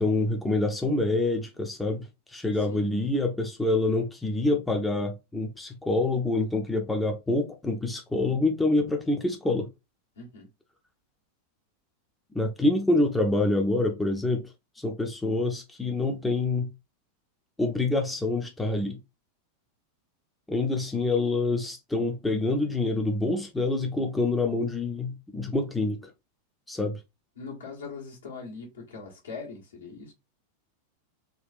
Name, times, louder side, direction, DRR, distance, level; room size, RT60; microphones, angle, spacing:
voice 1, 0.0-9.7 12.3-14.4 14.8-16.7 17.6-19.0 20.5-26.0 26.7-27.0, left 2 dB, 5° left, 0.6 m, -26 dB
voice 2, 10.2-10.5 27.4-30.1, left 4 dB, 70° left, 1.3 m, -41 dB
3.7 x 2.4 x 2.5 m
figure-of-eight pair, 90°, 0 cm